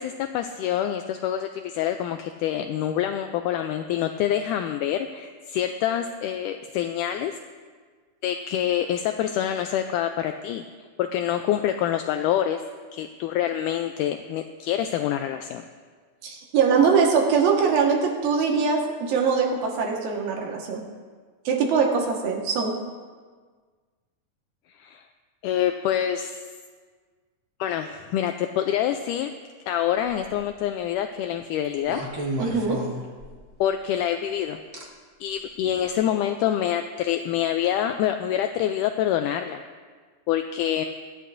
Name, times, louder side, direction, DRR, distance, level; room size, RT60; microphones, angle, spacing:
voice 1, 0.0-7.4 8.2-10.6 11.0-12.6 12.9-15.6 24.8-25.0 25.4-26.4 27.6-29.3 29.7-32.0 33.6-34.6 35.2-39.6 40.3-40.9, left 10 dB, 80° left, 6 dB, 1.9 m, -26 dB
voice 2, 16.2-20.8 21.4-22.7 32.4-32.8, right 5 dB, 90° right, 0 dB, 3.3 m, -22 dB
sound 1, 30.0-30.5 31.8-33.6 34.7-34.8 35.7-35.9, right 1 dB, 60° right, 0.7 m, -33 dB
22.5 x 10.0 x 2.6 m, 1.5 s
omnidirectional pair, 3.9 m